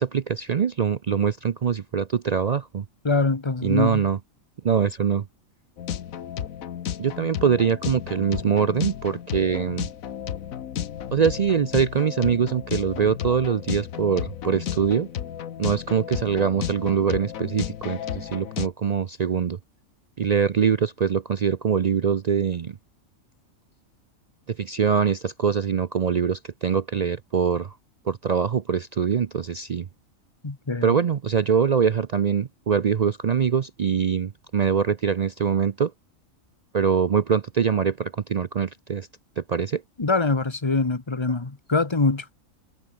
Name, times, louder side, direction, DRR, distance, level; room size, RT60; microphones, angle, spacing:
voice 1, 0.0-2.8 3.6-4.2 4.6-5.2 7.0-9.9 11.1-15.1 15.6-19.6 20.2-22.8 24.5-27.7 28.1-29.9 30.8-35.9 36.7-39.1 39.4-39.8, right 7 dB, 60° right, 0.4 m, -23 dB
voice 2, 3.0-4.0 30.4-30.9 40.0-42.4, left 3 dB, 20° left, 1.3 m, -24 dB
sound 1, 5.8-18.7, left 9 dB, 85° left, 1.4 m, -33 dB
omnidirectional pair, 1.4 m